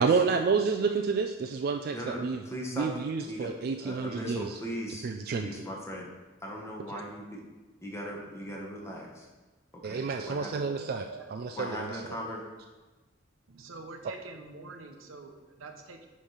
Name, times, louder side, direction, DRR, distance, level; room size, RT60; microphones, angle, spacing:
voice 1, 0.0-2.4 2.7-4.6 5.0-5.5 9.8-12.0, right 5 dB, 50° right, 5 dB, 0.3 m, -29 dB
voice 2, 1.9-3.5 3.8-6.1 6.4-7.4 7.8-9.3 9.7-10.5 11.5-12.4, equal, 15° left, -2 dB, 1.1 m, -39 dB
voice 3, 9.8-11.3 12.1-12.2 13.5-16.1, right 3 dB, 85° right, 5 dB, 0.8 m, -46 dB
8.6 x 3.2 x 5.6 m, 1.2 s
head